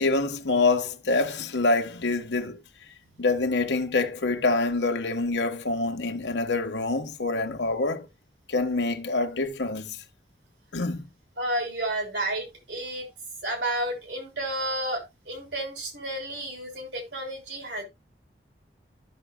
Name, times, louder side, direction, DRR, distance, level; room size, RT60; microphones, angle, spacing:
voice 1, 0.0-2.6 3.2-8.1 8.5-10.0 10.7-11.1, left 3 dB, 90° left, 1.3 m, -26 dB
voice 2, 11.4-13.1 13.4-17.8, right 1 dB, 80° right, 3.6 m, -31 dB
13.5 x 6.1 x 2.2 m
head